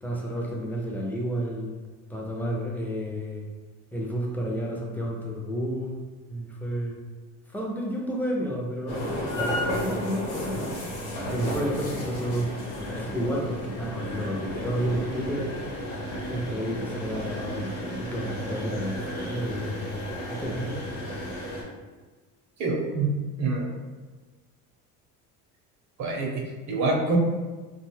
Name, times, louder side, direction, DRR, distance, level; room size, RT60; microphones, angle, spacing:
voice 1, 0.0-1.8 2.1-3.5 3.9-6.0 6.3-7.0 7.5-10.8 11.3-12.5 12.8-15.6 16.2-20.8, equal, 5° left, -2 dB, 0.4 m, -31 dB
sound 1, 8.9-21.6, left 1 dB, 85° left, 1.0 m, -33 dB
voice 2, 22.6-23.1 23.4-23.7 26.0-27.2, right 3 dB, 50° right, 0 dB, 0.6 m, -26 dB
2.5 x 2.3 x 3.2 m, 1.3 s
cardioid pair, 110°, 35 cm